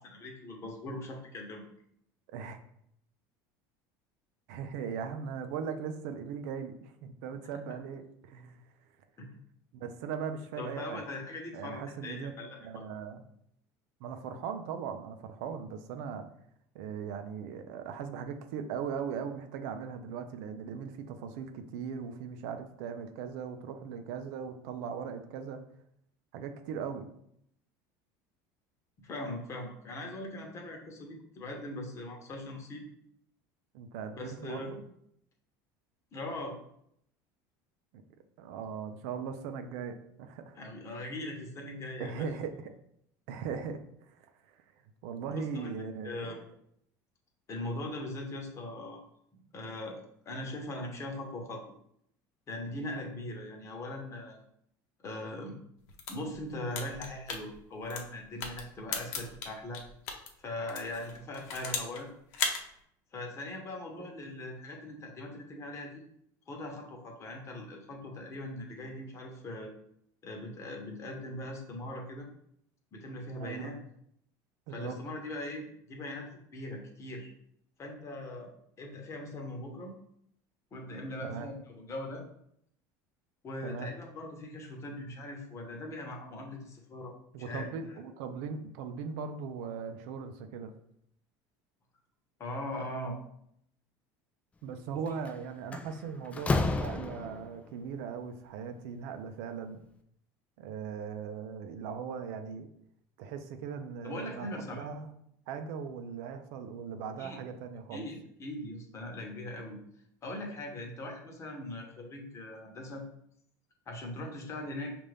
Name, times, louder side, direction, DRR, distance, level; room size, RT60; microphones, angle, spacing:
voice 1, 0.0-1.6 9.2-9.4 10.6-12.8 29.0-32.9 34.2-34.7 36.1-36.5 40.5-42.3 45.2-45.7 46.0-46.4 47.5-49.0 49.3-51.6 52.5-54.4 55.0-55.5 56.1-59.8 60.4-62.1 63.1-66.0 66.5-69.7 70.2-72.3 72.9-73.8 74.7-77.3 77.8-79.9 80.7-82.2 83.4-88.0 92.4-93.2 104.0-104.8 107.2-107.4 107.9-109.8 110.2-113.0 113.9-115.0, left 1 dB, 30° left, 1 dB, 1.0 m, -40 dB
voice 2, 4.5-8.6 9.7-11.0 11.5-12.3 12.6-13.2 14.0-16.3 16.7-25.6 26.3-27.1 33.7-34.8 37.9-38.0 38.4-40.6 42.0-42.7 43.3-44.6 45.0-46.3 64.0-64.1 73.4-73.7 74.7-75.0 81.3-81.5 83.6-83.9 87.3-90.7 94.6-99.8 100.6-102.7 103.2-105.1 105.5-108.1, right 6 dB, 75° right, 7 dB, 0.5 m, -39 dB
sound 1, 55.8-60.3 60.7-62.0 62.3-62.6, left 5 dB, 80° left, 0.8 m, -36 dB
Slam, 95.1-95.3 95.7-97.6, left 3 dB, 15° left, 0.3 m, -31 dB
5.3 x 2.5 x 3.3 m, 0.72 s
supercardioid pair, 125°, 9 cm